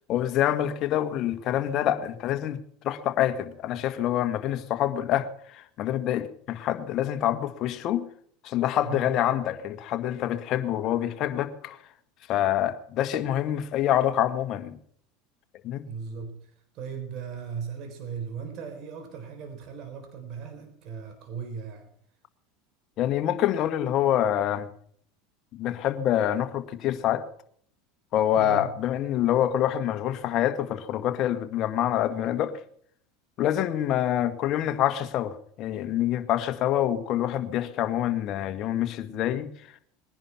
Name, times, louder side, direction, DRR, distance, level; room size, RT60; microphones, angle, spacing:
voice 1, 0.1-2.6 2.8-8.0 8.4-11.8 12.3-14.8 15.6-15.9 23.0-24.7 25.5-27.2 28.1-32.5 33.4-39.5, left 11 dB, 50° left, 1.8 m, -26 dB
voice 2, 8.8-9.2 15.8-21.9 28.3-28.7, right 6 dB, 50° right, 4.1 m, -38 dB
20.5 x 10.5 x 5.9 m
supercardioid pair, 105°, 0 cm